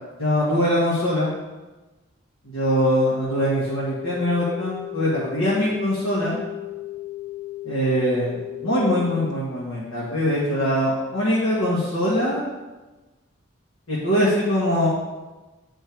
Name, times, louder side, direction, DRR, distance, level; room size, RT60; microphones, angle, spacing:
voice 1, 0.2-1.3 2.4-6.4 7.6-12.4 13.9-14.9, equal, 80° left, -6 dB, 1.5 m, -22 dB
sound 1, 3.2-9.3, left 16 dB, 20° left, 0.9 m, -35 dB
8.2 x 4.4 x 4.6 m, 1.2 s
head